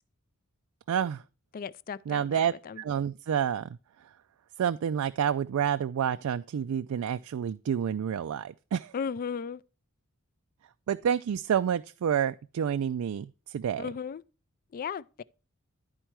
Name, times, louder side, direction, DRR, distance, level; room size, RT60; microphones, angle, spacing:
voice 1, 0.9-1.2 2.1-3.7 4.6-8.9 10.9-13.9, right 8 dB, 70° right, 0.3 m, -29 dB
voice 2, 1.5-2.8 8.9-9.6 13.8-14.2 14.7-15.2, left 6 dB, 40° left, 0.3 m, -36 dB
11.5 x 4.5 x 4.5 m
head